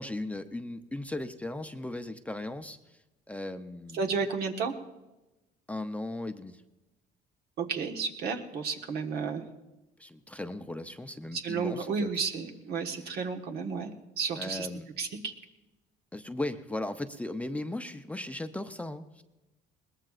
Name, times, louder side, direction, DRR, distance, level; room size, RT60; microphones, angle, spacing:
voice 1, 0.0-3.0 3.3-4.1 5.7-6.6 10.0-12.1 12.9-13.0 14.4-14.9 16.1-19.2, left 2 dB, 10° left, 7 dB, 0.6 m, -37 dB
voice 2, 3.9-4.7 7.6-9.4 11.3-14.7 15.0-15.3, right 5 dB, 70° right, 3 dB, 1.4 m, -32 dB
21.0 x 19.0 x 2.5 m, 1.0 s
cardioid pair, 110°, 17 cm